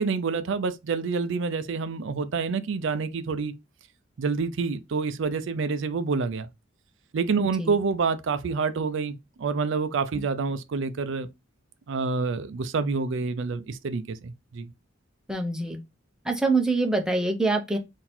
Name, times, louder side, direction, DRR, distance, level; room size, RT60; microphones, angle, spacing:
voice 1, 0.0-3.5 4.2-6.5 7.1-11.3 11.9-14.7, right 4 dB, 65° right, 0.4 m, -27 dB
voice 2, 7.4-7.7 15.3-15.8 16.2-17.8, right 3 dB, 5° right, 0.7 m, -25 dB
3.9 x 2.6 x 4.2 m
head